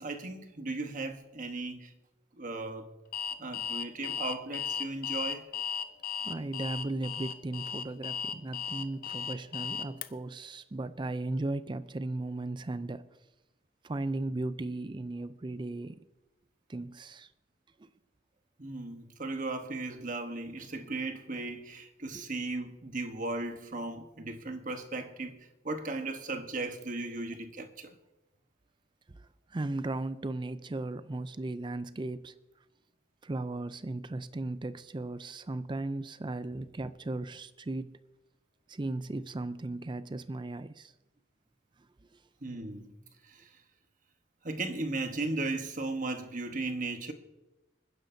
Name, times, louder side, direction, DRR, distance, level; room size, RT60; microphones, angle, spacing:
voice 1, 0.0-1.9 2.4-2.9 3.4-5.5 18.6-27.9 42.4-42.9 43.2-43.5 44.4-47.1, right 2 dB, 45° right, 1.2 m, -36 dB
Alarm, 3.1-10.1, left 7 dB, 50° left, 0.6 m, -36 dB
voice 2, 6.2-13.1 13.8-16.0 16.7-17.3 17.8-17.9 22.1-22.3 29.1-32.3 33.2-38.0 38.7-40.9 42.1-42.2, right 2 dB, 25° right, 0.4 m, -36 dB
26.5 x 10.0 x 2.7 m
head